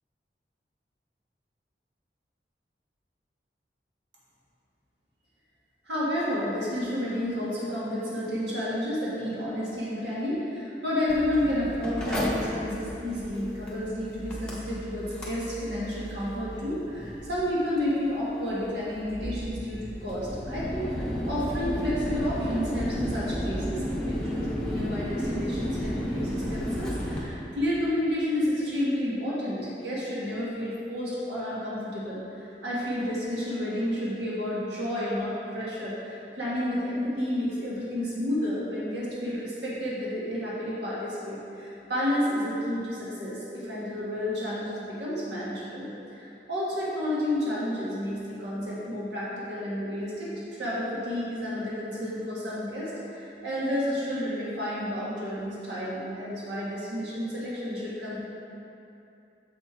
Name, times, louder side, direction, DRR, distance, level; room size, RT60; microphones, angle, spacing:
voice 1, 5.8-50.3 50.6-58.2, left 1 dB, 85° right, -8 dB, 1.5 m, -31 dB
Mechanical fan, 11.1-27.2, equal, 5° left, 0.9 m, -33 dB
6.7 x 4.4 x 4.8 m, 2.8 s
head